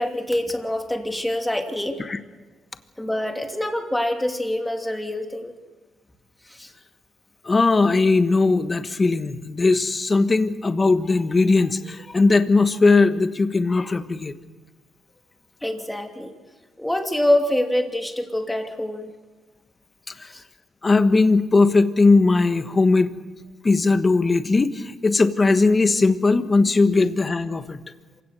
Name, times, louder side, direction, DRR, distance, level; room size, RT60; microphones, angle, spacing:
voice 1, 0.0-2.0 3.0-5.5 6.4-6.7 15.6-16.3 16.8-19.1 20.2-20.4, left 1 dB, 5° left, 4 dB, 2.7 m, -25 dB
voice 2, 7.4-14.3 20.8-23.1 23.6-27.8, left 3 dB, 25° left, 10 dB, 1.3 m, -19 dB
27.0 x 16.5 x 6.6 m, 1.3 s
cardioid pair, 90°, 0 cm